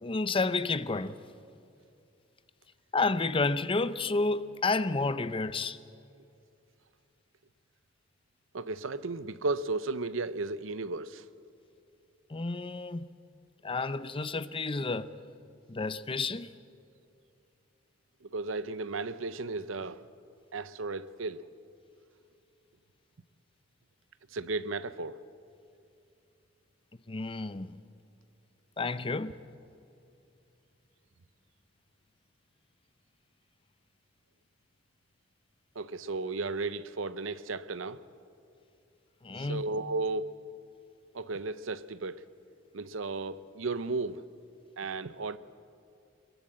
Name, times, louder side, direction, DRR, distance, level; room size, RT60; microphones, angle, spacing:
voice 1, 0.0-1.2 2.9-5.8 12.3-13.1 13.6-15.1 15.7-16.5 27.1-27.8 28.8-29.3 39.2-39.6, left 3 dB, 25° left, 0.6 m, -30 dB
voice 2, 8.5-11.3 14.8-14.9 18.2-20.1 20.5-21.5 24.3-25.2 35.7-38.0 39.4-40.4 41.1-42.2 42.7-44.2 44.8-45.4, right 3 dB, 80° right, 0.7 m, -34 dB
22.0 x 21.5 x 7.6 m
head